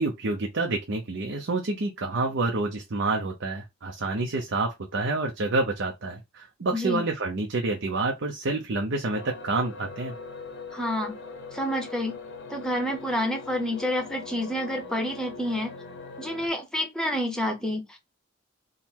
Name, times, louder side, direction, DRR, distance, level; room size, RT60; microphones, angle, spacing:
voice 1, 0.0-10.1, right 3 dB, 65° right, 0.6 m, -28 dB
voice 2, 6.7-7.0 10.7-11.2 11.5-12.2 12.5-15.7 16.2-18.0, left 1 dB, 5° left, 0.7 m, -29 dB
sound 1, 9.1-16.5, left 4 dB, 60° left, 0.7 m, -41 dB
3.8 x 2.1 x 4.3 m
head